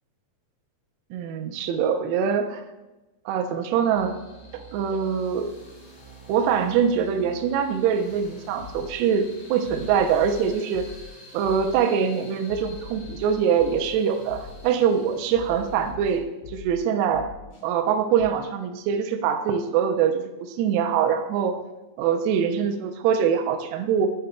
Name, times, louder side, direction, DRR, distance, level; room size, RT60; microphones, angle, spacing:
voice 1, 1.1-2.6 3.3-4.2 4.5-5.5 6.3-10.9 11.3-17.3 17.6-21.6 22.0-24.1, right 7 dB, 80° right, 5 dB, 2.6 m, -23 dB
sound 1, 3.9-15.9, right 1 dB, 75° left, 0.8 m, -48 dB
sound 2, 8.2-8.3 8.6-9.1 9.6-11.1 11.4-11.9 12.5-13.9 14.3-14.8 15.3-16.8 17.1-17.6 18.2-18.3, left 7 dB, 55° left, 3.3 m, -42 dB
10.0 x 5.4 x 2.2 m, 1.0 s
omnidirectional pair, 5.0 m